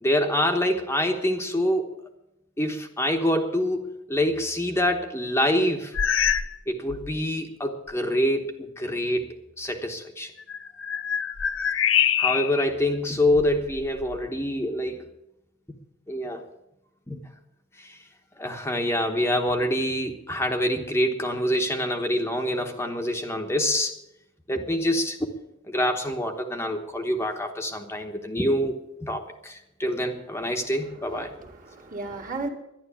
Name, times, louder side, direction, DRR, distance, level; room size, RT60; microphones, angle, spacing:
voice 1, 0.0-1.9 2.6-5.9 6.7-10.3 12.2-15.0 16.1-16.4 17.1-17.2 17.8-18.0 18.4-24.0 24.5-25.2 25.7-31.3, left 1 dB, 15° left, 3 dB, 1.1 m, -26 dB
sound 1, 5.9-6.6 6.9-7.2 7.9-8.0 10.4-12.7 13.3-14.3, left 8 dB, 75° left, 0.7 m, -26 dB
voice 2, 31.1-32.5, right 3 dB, 45° right, 1 dB, 2.1 m, -36 dB
11.5 x 11.0 x 8.4 m, 0.87 s
head